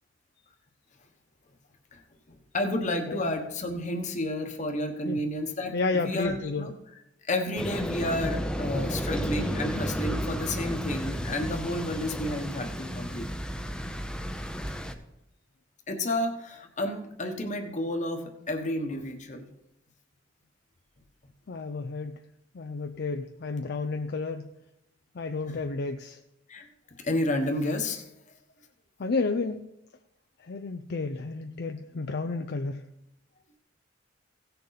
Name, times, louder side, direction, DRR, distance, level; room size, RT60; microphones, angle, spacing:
voice 1, 2.5-6.7 7.2-13.3 15.9-19.5 25.5-25.6 26.5-26.7 27.0-28.0, left 1 dB, 40° left, 5 dB, 1.2 m, -31 dB
voice 2, 5.7-6.7 21.5-22.2 22.5-24.5 25.2-26.2 29.0-29.7 30.4-32.9, left 3 dB, 60° left, 6 dB, 0.5 m, -31 dB
sound 1, 7.6-14.9, equal, 5° left, 0.7 m, -32 dB
16.5 x 6.7 x 4.1 m, 0.86 s
head